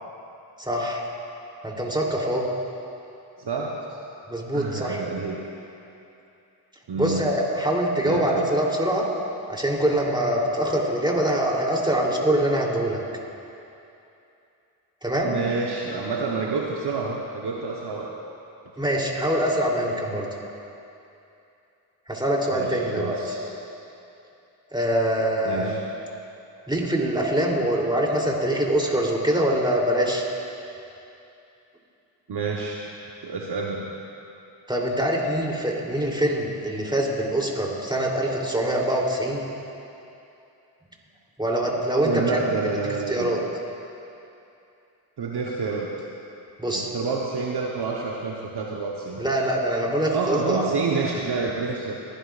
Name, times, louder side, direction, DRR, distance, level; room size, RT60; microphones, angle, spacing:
voice 1, 0.6-1.0 1.6-2.5 4.3-5.1 7.0-9.1 9.5-13.0 15.0-15.4 18.8-20.3 22.1-23.4 24.7-25.8 26.7-30.3 34.7-39.4 41.4-42.4 43.1-43.4 46.6-46.9 49.2-50.7, right 1 dB, 10° right, -2 dB, 3.3 m, -24 dB
voice 2, 3.4-4.0 4.5-5.4 6.9-7.3 8.0-8.5 15.2-18.1 22.5-23.4 25.4-25.8 32.3-32.8 33.2-33.9 42.0-43.5 45.2-45.9 46.7-49.2 50.1-51.9, right 4 dB, 50° right, -2 dB, 1.2 m, -28 dB
20.5 x 11.5 x 2.5 m, 2.7 s
supercardioid pair, 40°, 49 cm